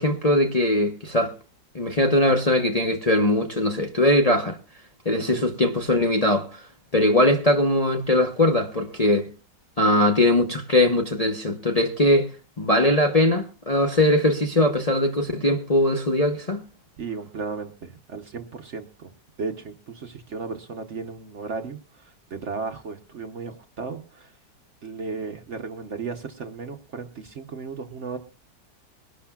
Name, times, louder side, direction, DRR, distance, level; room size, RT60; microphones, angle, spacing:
voice 1, 0.0-1.3 1.7-4.6 5.0-6.7 6.9-9.3 9.8-12.3 12.6-16.6, left 1 dB, 30° left, 0.8 m, -21 dB
voice 2, 17.0-19.1 19.4-24.4 24.8-28.2, right 4 dB, 50° right, 1.0 m, -35 dB
22.5 x 11.5 x 2.3 m
omnidirectional pair, 1.9 m